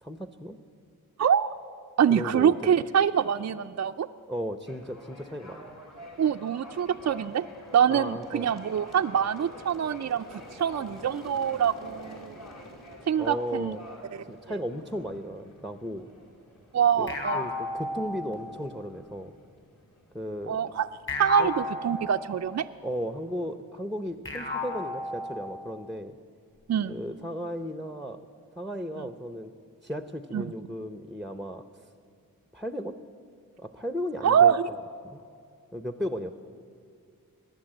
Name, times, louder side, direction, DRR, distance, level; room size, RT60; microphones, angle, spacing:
voice 1, 0.0-0.6 2.1-2.8 4.3-5.7 7.9-8.5 13.2-13.8 14.3-16.1 17.0-19.3 20.1-20.6 21.4-21.5 22.8-26.2 26.9-28.2 28.6-29.5 29.8-31.8 32.5-33.0 33.6-34.5 35.0-35.2 35.7-36.3, equal, ahead, 9 dB, 0.7 m, -35 dB
voice 2, 2.0-4.1 6.2-7.5 7.7-12.4 13.1-13.8 14.1-14.2 16.7-17.4 20.5-20.9 21.2-22.7 26.7-27.0 30.3-30.5 34.2-34.6, right 8 dB, 50° right, 7 dB, 0.4 m, -25 dB
sound 1, 4.7-23.6, equal, 50° left, 3.4 m, -48 dB
sound 2, 17.1-18.7 21.1-22.7 24.2-25.8, left 3 dB, 35° left, 3.7 m, -34 dB
20.5 x 7.4 x 9.0 m, 2.3 s
cardioid pair, 50°, 36 cm